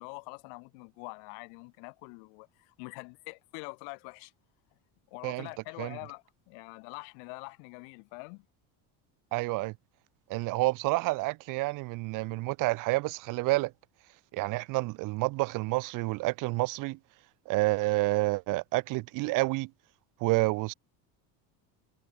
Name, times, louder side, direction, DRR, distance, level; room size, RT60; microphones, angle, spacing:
voice 1, 0.0-4.3 5.1-8.5, left 40 dB or more, 85° left, 5.9 m, -45 dB
voice 2, 9.3-9.7 10.3-13.7 14.3-17.0 17.5-19.7 20.2-20.7, right 22 dB, 50° right, 0.4 m, -29 dB
cardioid pair, 150°, 43 cm